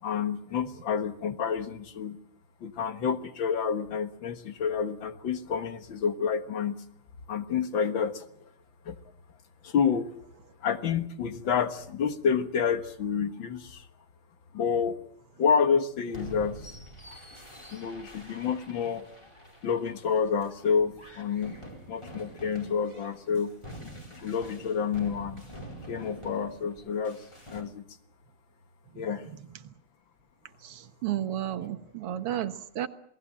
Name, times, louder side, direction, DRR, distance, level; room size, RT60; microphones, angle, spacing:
voice 1, 0.0-2.2 2.6-6.8 7.3-8.5 8.9-9.0 9.6-10.1 10.6-13.9 14.5-15.0 15.4-16.7 17.1-17.2 17.7-19.1 19.6-21.6 21.9-23.5 23.8-25.4 25.9-27.2 27.5-27.8 29.0-29.3, left 6 dB, 60° left, 10 dB, 2.1 m, -29 dB
sound 1, 16.1-27.6, right 1 dB, 10° left, 4.2 m, -46 dB
voice 2, 30.6-32.9, right 11 dB, 90° right, 11 dB, 2.2 m, -32 dB
27.5 x 18.5 x 7.5 m, 0.64 s
omnidirectional pair, 2.4 m